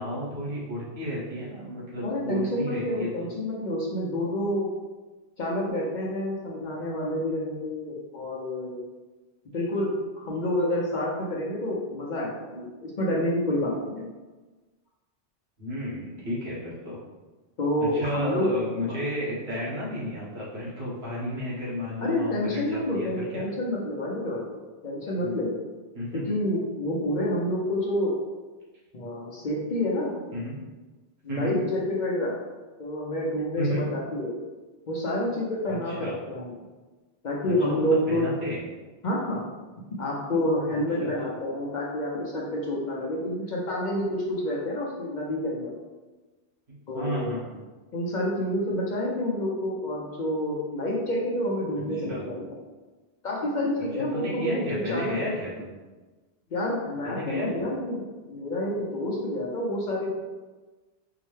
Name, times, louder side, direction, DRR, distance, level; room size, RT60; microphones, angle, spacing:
voice 1, 0.0-3.3 15.6-17.0 17.8-23.1 23.3-23.4 25.2-25.3 25.9-26.2 29.2-29.3 30.1-30.6 31.3-31.6 33.6-33.9 35.7-36.1 37.7-38.6 41.0-41.1 46.9-47.5 51.9-52.2 53.9-55.7 57.0-57.7, equal, 70° right, -7 dB, 1.4 m, -32 dB
voice 2, 2.0-4.7 5.4-8.8 9.5-14.1 17.6-18.5 18.9-19.0 22.0-24.5 24.8-25.6 26.1-28.1 28.9-30.1 31.2-32.3 32.8-34.3 34.9-36.5 37.2-38.2 39.0-39.5 40.0-45.7 46.9-47.3 47.9-52.6 53.2-55.3 56.5-60.1, left 1 dB, 50° left, -4 dB, 0.7 m, -28 dB
4.6 x 2.1 x 3.1 m, 1.3 s
omnidirectional pair, 1.1 m